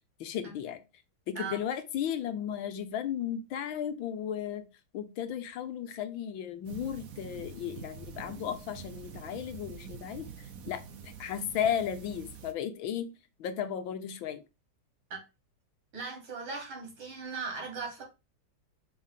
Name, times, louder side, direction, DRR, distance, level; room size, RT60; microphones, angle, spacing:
voice 1, 0.2-0.8 1.3-4.7 4.9-13.1 13.4-14.4, left 9 dB, 75° left, 1.6 m, -35 dB
sound 1, 6.7-12.5, right 6 dB, 60° right, 1.0 m, -46 dB
voice 2, 15.9-18.0, right 4 dB, 90° right, 3.0 m, -38 dB
5.5 x 3.4 x 5.6 m
omnidirectional pair, 2.2 m